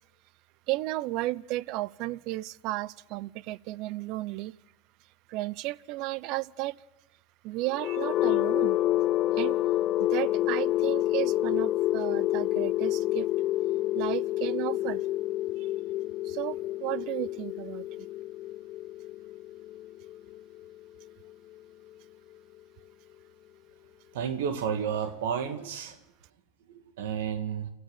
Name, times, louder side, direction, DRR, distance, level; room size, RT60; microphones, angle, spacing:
voice 1, 0.7-4.5 5.3-6.8 7.4-8.8 9.4-9.6 10.0-13.3 13.9-15.0 15.6-15.7 16.2-18.1, right 18 dB, 55° right, 23 dB, 0.7 m, -33 dB
sound 1, 7.6-21.5, left 15 dB, 50° left, 0.7 m, -28 dB
voice 2, 24.1-26.0 27.0-27.7, right 7 dB, 80° right, 9 dB, 2.2 m, -31 dB
28.0 x 14.0 x 9.1 m, 0.97 s
supercardioid pair, 110°, 0 cm